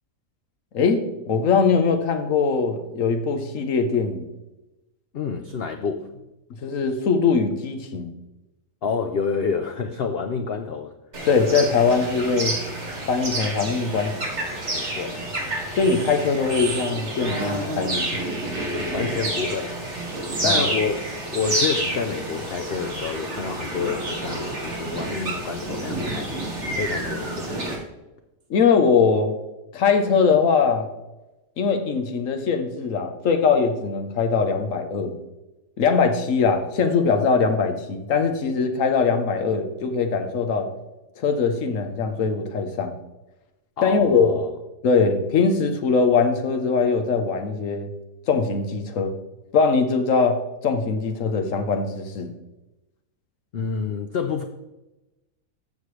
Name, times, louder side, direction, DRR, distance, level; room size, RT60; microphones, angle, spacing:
voice 1, 0.7-4.3 6.6-8.1 11.2-12.6 13.1-14.2 15.8-18.1 20.4-20.6 28.5-29.3 29.7-30.9 31.6-35.2 35.8-40.7 41.2-42.9 43.8-44.3 44.8-47.9 48.3-49.1 49.5-52.3, left 5 dB, 55° left, 6 dB, 1.2 m, -21 dB
voice 2, 5.1-6.1 8.8-10.9 14.7-15.2 18.1-26.4 26.7-27.5 43.8-44.5 53.5-54.4, left 5 dB, 80° left, 7 dB, 0.5 m, -29 dB
sound 1, 11.1-27.8, right 1 dB, 45° right, 2.2 m, -29 dB
14.5 x 6.5 x 3.2 m, 1.0 s
omnidirectional pair, 1.7 m